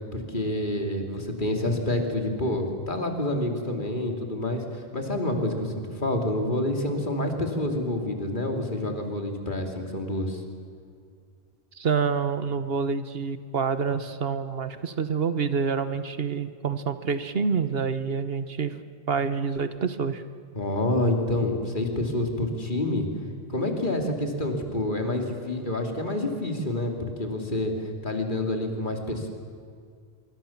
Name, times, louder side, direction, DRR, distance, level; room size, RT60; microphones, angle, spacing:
voice 1, 0.1-10.4 20.5-23.1 23.5-27.7 28.0-29.3, left 1 dB, 50° left, 3 dB, 3.0 m, -28 dB
voice 2, 11.7-18.8 19.1-20.2, right 5 dB, 65° right, 11 dB, 1.3 m, -27 dB
25.5 x 23.5 x 7.2 m, 2.2 s
omnidirectional pair, 1.1 m